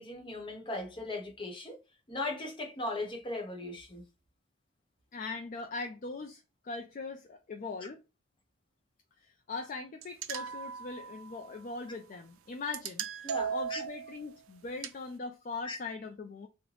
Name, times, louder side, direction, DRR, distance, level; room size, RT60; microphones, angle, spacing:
voice 1, 0.0-1.8 2.1-4.0 13.2-13.8 15.6-15.8, left 2 dB, 25° left, 0.8 m, -38 dB
voice 2, 5.1-8.0 9.2-16.5, left 3 dB, 40° left, 0.3 m, -41 dB
sound 1, 10.0-11.5 12.7-14.2 14.8-14.9, right 7 dB, 80° right, 0.4 m, -37 dB
3.2 x 2.1 x 3.7 m
head